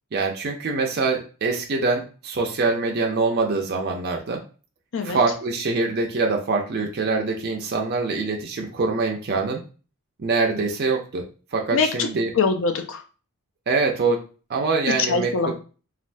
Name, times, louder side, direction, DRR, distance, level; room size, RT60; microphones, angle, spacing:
voice 1, 0.1-4.4 5.0-9.6 10.2-11.2 11.5-12.3 13.7-14.2 14.5-15.3, right 3 dB, 45° right, 1 dB, 0.5 m, -24 dB
voice 2, 11.7-12.1 12.3-13.0 15.1-15.6, left 4 dB, 60° left, 6 dB, 0.5 m, -23 dB
3.3 x 2.4 x 2.5 m, 0.36 s
head